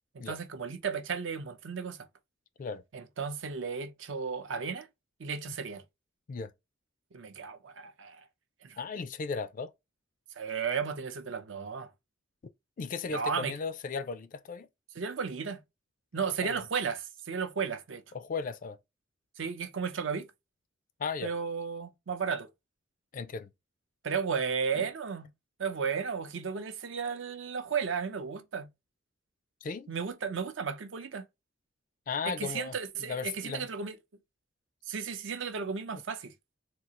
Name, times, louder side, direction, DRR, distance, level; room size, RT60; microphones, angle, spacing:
voice 1, 0.1-2.0 2.9-4.9 5.2-5.8 7.1-8.3 8.6-8.8 10.4-11.9 13.1-13.5 15.0-15.6 16.1-18.0 19.4-20.3 21.2-22.5 24.0-25.3 25.6-28.7 29.9-31.2 32.3-34.0 34.9-36.3, right 6 dB, 70° right, 0.6 m, -34 dB
voice 2, 8.8-9.7 12.8-14.7 16.1-16.6 18.1-18.8 21.0-21.3 23.1-23.5 24.7-24.9 29.6-29.9 32.1-33.7, left 5 dB, 45° left, 0.4 m, -36 dB
3.7 x 2.4 x 2.8 m
head